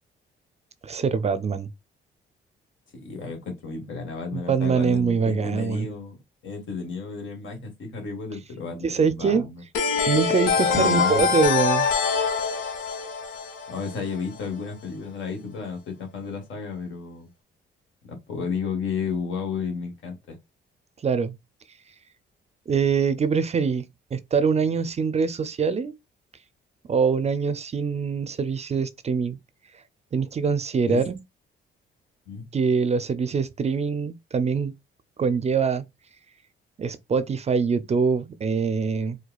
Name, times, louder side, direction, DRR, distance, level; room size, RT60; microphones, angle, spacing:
voice 1, 0.8-1.7 4.3-6.0 8.8-9.5 10.1-11.9 21.0-21.3 22.7-23.8 24.1-25.9 26.9-29.4 30.1-31.2 32.5-34.7 35.2-35.8 36.8-39.2, right 5 dB, 35° right, 0.5 m, -24 dB
voice 2, 2.9-6.2 6.4-9.6 10.7-11.2 13.7-17.3 18.1-20.4 30.9-31.0 32.3-32.4, left 5 dB, 75° left, 1.5 m, -32 dB
sound 1, 9.7-14.4, left 5 dB, 90° left, 1.0 m, -24 dB
4.5 x 2.3 x 2.3 m
cardioid pair, 90°, 20 cm